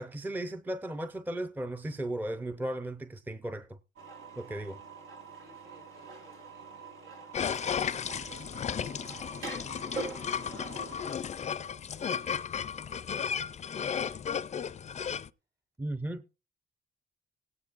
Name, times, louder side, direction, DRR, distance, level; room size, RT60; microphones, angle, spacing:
voice 1, 0.0-3.8 4.4-4.8 15.8-16.2, right 1 dB, 10° right, 0.6 m, -36 dB
sound 1, 4.0-11.1, right 3 dB, 90° right, 2.9 m, -44 dB
voice 2, 5.4-15.1, right 2 dB, 60° right, 7.3 m, -61 dB
sound 2, 7.3-15.3, left 7 dB, 35° left, 0.4 m, -34 dB
17.0 x 9.5 x 2.5 m
cardioid pair, 90°, 20 cm